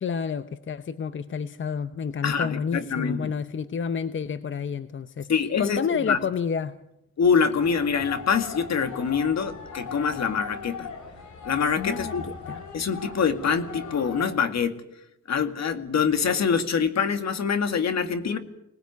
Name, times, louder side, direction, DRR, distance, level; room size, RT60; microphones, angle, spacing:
voice 1, 0.0-5.3 5.6-6.8 11.8-12.6, left 6 dB, 45° left, 12 dB, 0.9 m, -30 dB
voice 2, 2.2-3.3 5.3-6.2 7.2-10.9 11.4-12.3 12.7-14.8 15.3-18.4, left 6 dB, 65° left, 9 dB, 2.2 m, -25 dB
sound 1, 7.6-14.3, left 5 dB, 85° left, 6.1 m, -39 dB
25.0 x 19.5 x 9.4 m, 0.86 s
wide cardioid pair, 140°, 29 cm